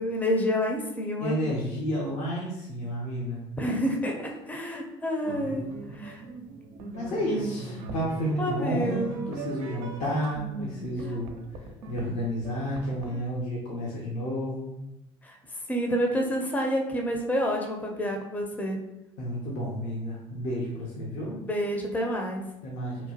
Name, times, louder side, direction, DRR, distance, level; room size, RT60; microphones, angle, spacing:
voice 1, 0.0-1.4 3.6-5.7 5.9-6.2 8.4-9.2 15.2-15.4 15.7-18.8 21.3-22.5, equal, 10° left, 1 dB, 0.5 m, -28 dB
voice 2, 1.2-3.4 6.0-6.1 6.9-11.4 11.9-14.7 19.2-21.3 22.6-23.0, equal, 60° left, -4 dB, 0.7 m, -31 dB
sound 1, 5.2-13.2, right 3 dB, 65° right, 0.5 m, -40 dB
2.9 x 2.1 x 2.8 m, 0.88 s
hypercardioid pair, 70°, 13 cm